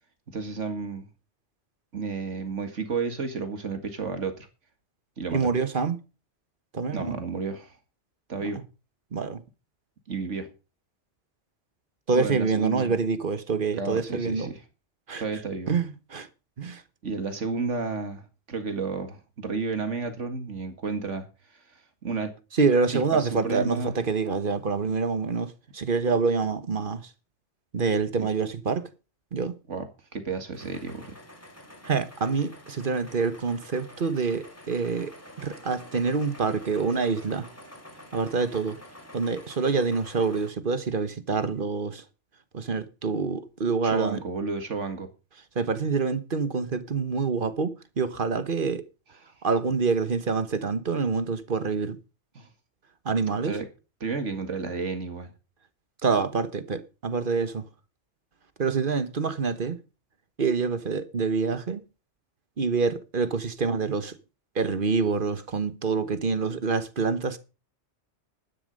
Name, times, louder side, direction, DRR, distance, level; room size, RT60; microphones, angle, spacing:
voice 1, 0.3-1.1 1.9-4.5 5.2-5.5 6.9-7.8 8.3-8.6 10.1-10.5 12.1-13.0 13.8-14.6 15.2-15.8 17.0-21.3 21.5-21.6 22.0-22.3 22.9-23.9 28.2-28.3 29.7-31.2 43.8-45.1 52.4-52.5 53.5-53.7 54.0-55.3, right 4 dB, 85° right, 2.2 m, -32 dB
voice 2, 5.3-6.0 6.7-7.1 9.1-9.4 12.1-14.5 15.1-15.2 15.7-16.3 16.6-16.8 22.5-27.0 27.7-28.9 29.3-29.6 31.8-35.1 35.4-37.5 38.1-38.8 39.1-42.0 42.5-44.2 45.5-48.8 49.4-52.0 53.0-53.6 56.0-57.6 58.6-59.8 60.4-61.8 62.6-64.1 64.5-67.4, right 4 dB, 50° right, 1.3 m, -26 dB
sound 1, 30.5-40.5, left 1 dB, 10° left, 2.9 m, -48 dB
12.0 x 9.8 x 5.3 m
omnidirectional pair, 1.2 m